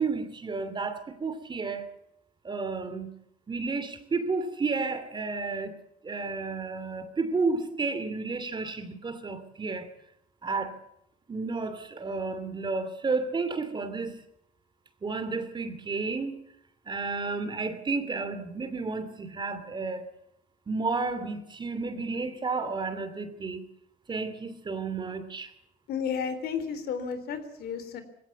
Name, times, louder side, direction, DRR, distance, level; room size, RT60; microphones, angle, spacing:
voice 1, 0.0-1.9 2.4-3.1 3.5-5.8 6.0-9.9 10.4-10.8 11.3-14.1 15.0-16.4 16.9-20.1 20.7-23.7 24.1-25.5, right 4 dB, 25° right, 2.8 m, -32 dB
voice 2, 25.9-28.0, left 6 dB, 70° left, 3.6 m, -32 dB
20.5 x 17.0 x 8.4 m
cardioid pair, 110°, 17 cm